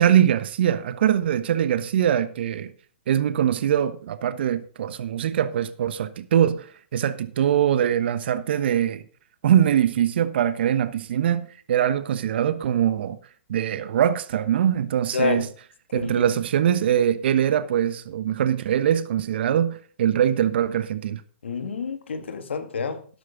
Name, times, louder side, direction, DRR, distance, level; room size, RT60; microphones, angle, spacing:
voice 1, 0.0-2.7 3.1-6.7 6.9-9.0 9.4-13.2 13.5-15.5 15.9-21.2, right 10 dB, 65° right, 1.2 m, -22 dB
voice 2, 15.1-15.4 15.9-16.2 21.4-23.1, left 5 dB, 80° left, 2.0 m, -28 dB
13.0 x 11.0 x 4.0 m
hypercardioid pair, 120°, 6 cm